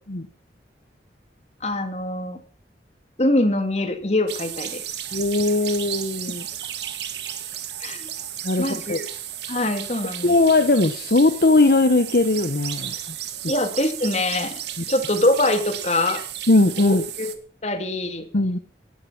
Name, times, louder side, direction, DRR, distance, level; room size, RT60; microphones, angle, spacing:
voice 1, 1.6-2.4 3.2-5.0 7.8-8.1 8.6-9.0 9.5-10.3 13.5-14.6 14.9-16.2 16.8-17.4 17.6-18.3, left 1 dB, 40° left, 8 dB, 2.3 m, -23 dB
sound 1, 4.3-17.4, right 11 dB, 75° right, 1.7 m, -34 dB
voice 2, 5.1-6.4 8.4-9.0 10.2-12.9 14.8-14.9 16.5-17.1 18.3-18.6, left 2 dB, 60° left, 9 dB, 1.0 m, -19 dB
18.0 x 11.5 x 5.9 m, 0.43 s
head